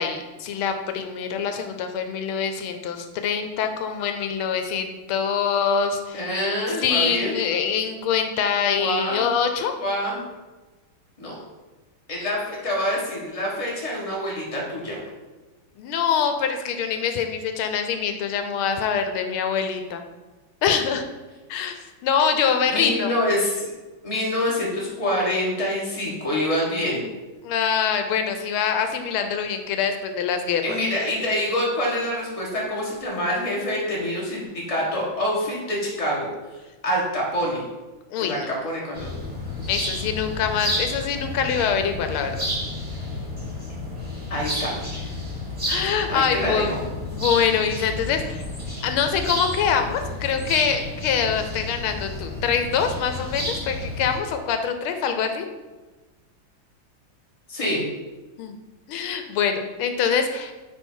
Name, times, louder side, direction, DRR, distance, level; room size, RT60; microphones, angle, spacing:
voice 1, 0.0-6.2 6.8-9.7 15.8-20.0 20.6-21.0 21.5-21.7 22.0-23.1 27.4-30.8 38.1-38.5 39.7-42.3 45.7-46.8 47.1-48.4 48.8-55.4 58.4-58.6 58.9-60.5, left 7 dB, 85° left, 7 dB, 1.5 m, -24 dB
voice 2, 6.1-7.4 8.7-9.2 9.8-10.2 11.2-11.4 12.1-15.0 22.7-23.7 24.0-27.0 30.6-36.3 36.8-37.6 38.2-39.1 44.3-44.7 46.1-46.8 57.5-57.8, left 1 dB, 20° left, -4 dB, 1.5 m, -26 dB
sound 1, 38.9-54.2, left 1 dB, 15° right, 1.5 m, -31 dB
9.2 x 3.2 x 4.5 m, 1.2 s
omnidirectional pair, 2.3 m